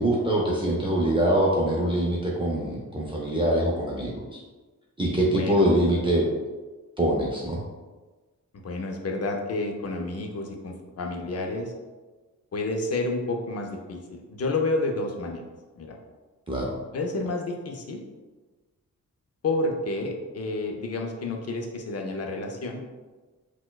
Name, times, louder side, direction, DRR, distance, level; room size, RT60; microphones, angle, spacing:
voice 1, 0.0-4.4 5.0-6.2 7.0-7.6 16.5-16.7, right 1 dB, 15° right, -4 dB, 0.5 m, -24 dB
voice 2, 5.3-5.7 8.5-11.7 12.5-15.4 15.8-16.0 16.9-18.0 19.4-22.8, left 2 dB, 50° left, 2 dB, 0.6 m, -30 dB
4.1 x 2.2 x 2.3 m, 1.3 s
cardioid pair, 85°, 33 cm